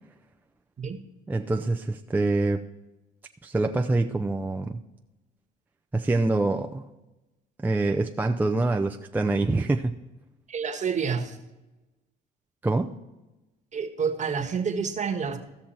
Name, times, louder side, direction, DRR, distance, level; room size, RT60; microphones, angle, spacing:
voice 1, 1.3-2.6 3.4-4.8 5.9-6.9 7.6-9.9 12.6-12.9, right 2 dB, 10° right, 4 dB, 0.5 m, -25 dB
voice 2, 10.5-11.4 13.7-15.4, right 6 dB, 40° right, 5 dB, 1.3 m, -28 dB
15.5 x 6.0 x 4.4 m, 1.0 s
cardioid pair, 90°, 19 cm